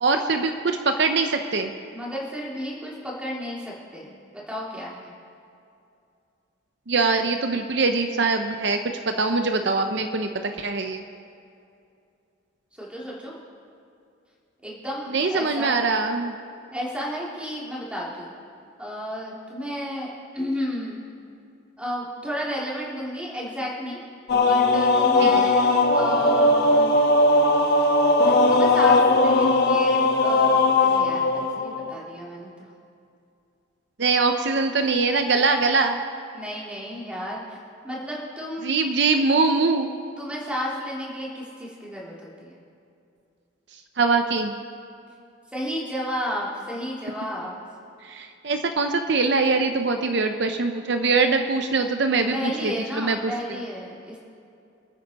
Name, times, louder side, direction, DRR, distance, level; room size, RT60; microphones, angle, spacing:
voice 1, 0.0-1.7 6.9-8.8 9.1-11.0 15.1-16.3 25.2-25.5 34.0-36.0 38.6-39.9 44.0-44.6 48.0-53.3, right 4 dB, 60° right, 6 dB, 0.7 m, -23 dB
voice 2, 1.9-5.1 12.7-13.3 14.6-15.7 16.7-18.3 18.8-20.1 20.3-21.0 21.8-24.0 24.5-26.9 28.3-32.7 36.3-37.6 37.8-38.9 40.2-42.6 45.5-47.6 52.3-54.2, equal, 5° right, -5 dB, 2.8 m, -32 dB
sound 1, 24.3-31.9, left 2 dB, 55° left, 1.3 m, -19 dB
27.0 x 9.2 x 4.2 m, 2.6 s
head